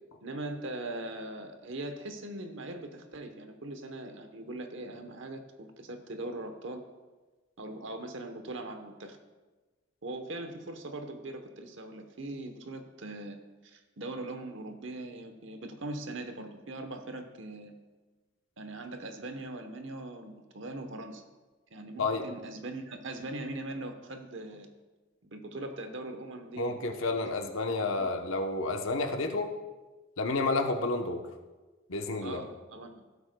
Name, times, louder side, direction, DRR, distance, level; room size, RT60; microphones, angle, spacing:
voice 1, 0.2-6.8 7.6-9.2 10.0-13.4 13.6-17.8 18.6-21.2 21.7-24.7 25.2-26.8 28.0-28.1 32.2-33.0, right 2 dB, 65° right, 6 dB, 1.0 m, -41 dB
voice 2, 26.6-29.5 30.2-31.2 31.9-32.4, left 3 dB, 90° left, 4 dB, 0.9 m, -30 dB
17.0 x 8.1 x 2.3 m, 1.2 s
head